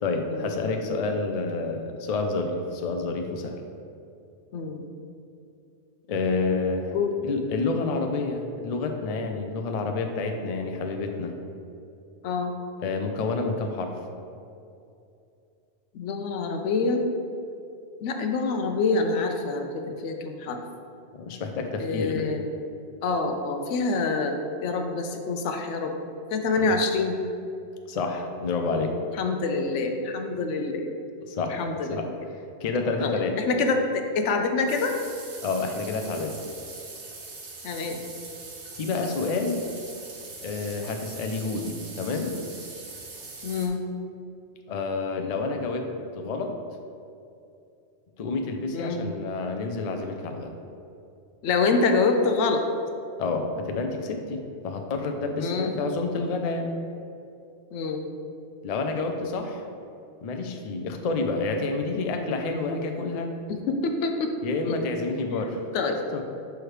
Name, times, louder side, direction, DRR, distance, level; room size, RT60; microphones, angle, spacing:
voice 1, 0.0-3.6 6.1-7.0 7.2-11.3 12.8-14.0 21.1-22.3 26.6-26.8 27.9-29.0 31.3-31.6 31.9-32.1 32.3-33.4 35.4-36.4 38.8-39.6 40.4-42.3 44.7-45.8 46.1-46.5 48.2-50.5 53.2-56.7 58.6-59.6 60.2-63.3 64.4-65.7 66.1-66.2, left 3 dB, 50° left, 4 dB, 0.5 m, -29 dB
voice 2, 4.5-4.9 6.9-7.2 12.2-12.6 15.9-17.1 18.0-20.6 21.8-22.5 23.0-25.9 26.3-27.2 29.2-30.9 31.5-32.0 33.0-34.9 37.6-38.0 43.4-43.8 48.7-49.0 51.4-52.6 55.4-55.7 57.7-58.0 63.5-64.3 64.6-64.8 65.3-65.4 65.7-66.0, left 4 dB, 90° left, 5 dB, 0.9 m, -26 dB
sound 1, 34.7-43.7, right 3 dB, 75° right, 1.1 m, -42 dB
6.4 x 4.6 x 3.2 m, 2.6 s
omnidirectional pair, 1.2 m